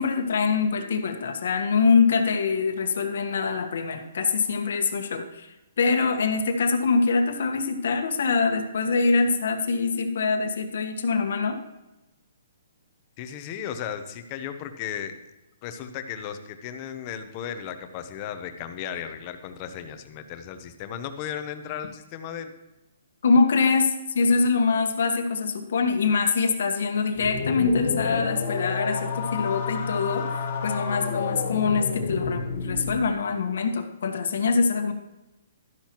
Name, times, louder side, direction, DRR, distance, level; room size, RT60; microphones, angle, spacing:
voice 1, 0.0-11.6 23.2-34.9, left 4 dB, 65° left, 6 dB, 1.3 m, -24 dB
voice 2, 13.2-15.1 15.6-22.5, left 9 dB, 25° left, 8 dB, 0.8 m, -35 dB
sound 1, 27.2-33.1, left 5 dB, 45° left, 1.8 m, -30 dB
12.5 x 10.0 x 3.0 m, 1.0 s
hypercardioid pair, 165°, 0 cm